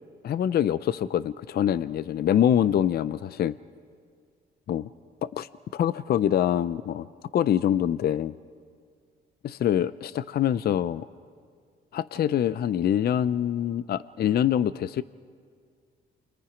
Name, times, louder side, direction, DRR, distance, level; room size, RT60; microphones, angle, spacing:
voice 1, 0.2-3.6 4.7-4.9 5.2-7.1 7.3-8.3 9.4-11.1 11.9-15.0, left 10 dB, 55° left, 16 dB, 0.5 m, -25 dB
29.0 x 24.0 x 5.0 m, 2.1 s
cardioid pair, 90°, 20 cm